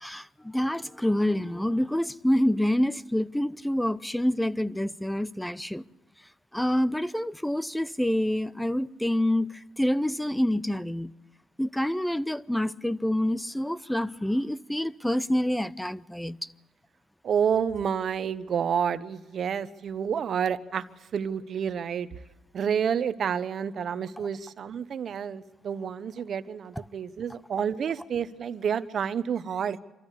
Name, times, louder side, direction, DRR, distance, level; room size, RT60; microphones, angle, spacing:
voice 1, 0.0-5.8 6.5-11.1 11.6-16.4, left 1 dB, 5° left, 0.6 m, -27 dB
voice 2, 17.2-20.8 21.1-22.1 22.5-29.8, right 7 dB, 55° right, 1.0 m, -29 dB
26.0 x 14.0 x 8.4 m
cardioid pair, 90°, 0 cm